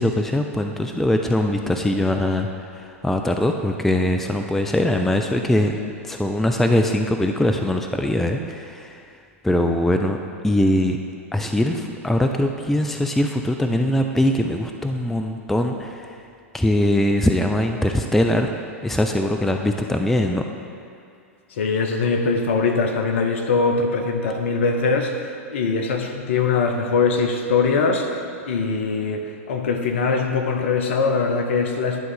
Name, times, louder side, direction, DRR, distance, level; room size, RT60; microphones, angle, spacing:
voice 1, 0.0-2.5 2.7-5.7 6.0-9.0 9.4-10.2 10.4-11.0 11.3-16.1 16.5-18.5 18.8-20.4, left 1 dB, 5° left, 4 dB, 0.3 m, -21 dB
voice 2, 21.5-32.0, left 4 dB, 60° left, 4 dB, 0.8 m, -22 dB
10.5 x 3.8 x 5.7 m, 2.4 s
figure-of-eight pair, 95°, 8 cm